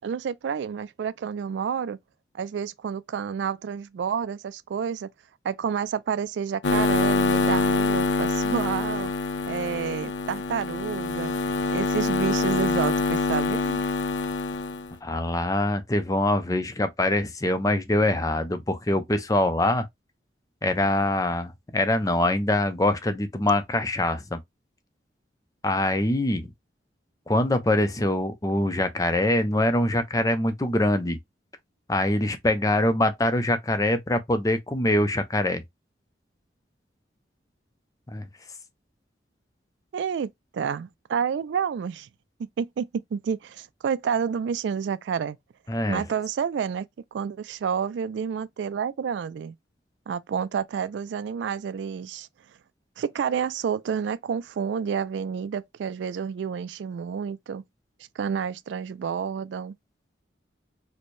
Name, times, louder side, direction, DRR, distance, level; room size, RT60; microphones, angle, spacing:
voice 1, 0.0-2.0 2.3-5.1 5.4-9.1 9.5-11.3 11.7-13.8 39.9-42.1 42.6-45.4 45.9-49.6 50.1-52.3 53.0-57.6 58.2-59.7, right 7 dB, 80° right, 0.3 m, -29 dB
sound 1, 6.6-14.9, left 3 dB, 85° left, 0.6 m, -25 dB
voice 2, 15.0-19.9 20.6-24.4 25.6-26.5 27.3-31.2 31.9-35.6 38.1-38.3 45.7-46.0, left 1 dB, 20° left, 0.5 m, -24 dB
4.3 x 2.1 x 3.1 m
head